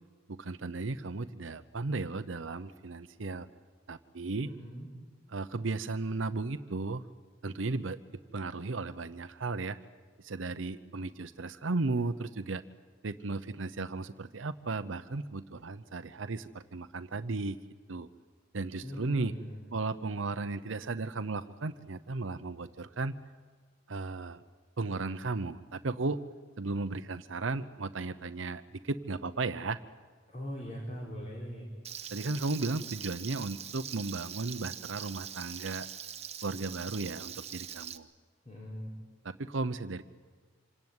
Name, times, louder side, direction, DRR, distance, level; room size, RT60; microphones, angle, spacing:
voice 1, 0.3-3.5 3.9-4.5 5.3-7.0 7.4-8.0 8.3-9.8 10.2-12.6 13.0-17.6 17.9-18.1 18.5-19.3 19.7-23.2 23.9-24.4 24.8-26.2 26.6-29.8 32.1-35.9 36.4-38.1 39.2-40.0, right 3 dB, 90° right, 10 dB, 0.8 m, -35 dB
voice 2, 4.4-4.9 18.8-19.6 30.3-31.7 38.4-38.9, equal, 35° left, -2 dB, 4.3 m, -41 dB
Frying (food), 31.8-38.0, right 9 dB, 35° right, 1.0 m, -43 dB
26.5 x 18.0 x 9.6 m, 1.5 s
head